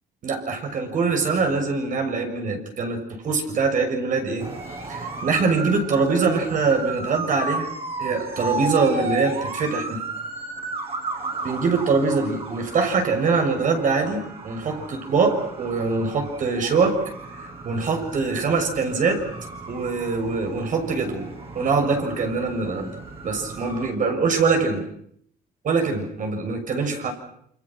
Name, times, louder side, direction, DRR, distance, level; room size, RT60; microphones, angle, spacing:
voice 1, 0.2-4.5 4.9-7.7 8.0-10.0 11.4-17.0 17.4-19.3 19.7-23.0 23.2-24.8 25.6-27.1, right 4 dB, 50° right, 4 dB, 6.7 m, -23 dB
sound 1, 4.4-23.9, right 3 dB, 35° right, 6.5 m, -34 dB
29.0 x 26.0 x 6.2 m, 0.69 s
cardioid pair, 110°, 17 cm